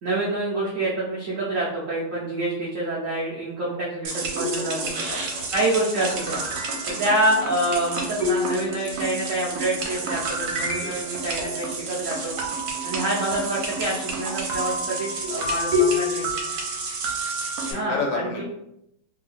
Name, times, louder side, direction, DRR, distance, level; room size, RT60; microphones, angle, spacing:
voice 1, 0.0-4.9 5.5-6.4 6.9-12.3 12.8-16.3 17.7-18.4, right 1 dB, 90° right, -6 dB, 0.7 m, -27 dB
sound 1, 4.0-17.7, right 1 dB, 70° right, 1.1 m, -28 dB
voice 2, 5.0-5.4 6.9-7.0 10.8-10.9 16.5-16.6 17.7-18.4, left 4 dB, 75° left, 1 dB, 1.1 m, -31 dB
3.0 x 2.7 x 2.4 m, 0.79 s
omnidirectional pair, 2.3 m